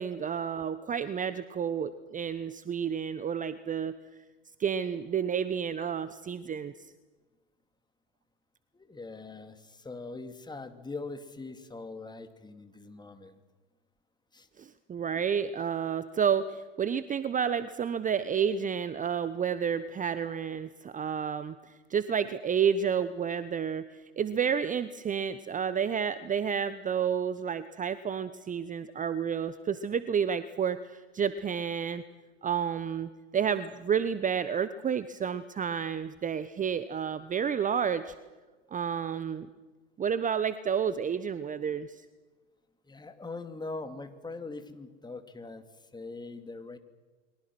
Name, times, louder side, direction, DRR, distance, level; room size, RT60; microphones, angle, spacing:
voice 1, 0.0-4.0 4.6-6.7 14.6-32.0 32.4-38.1 38.7-39.5 40.0-42.0, right 7 dB, 20° right, 14 dB, 1.0 m, -30 dB
voice 2, 8.7-13.4 14.3-14.5 42.9-46.8, left 3 dB, 10° left, 8 dB, 2.5 m, -42 dB
29.5 x 23.0 x 6.2 m, 1.3 s
hypercardioid pair, 90°, 37 cm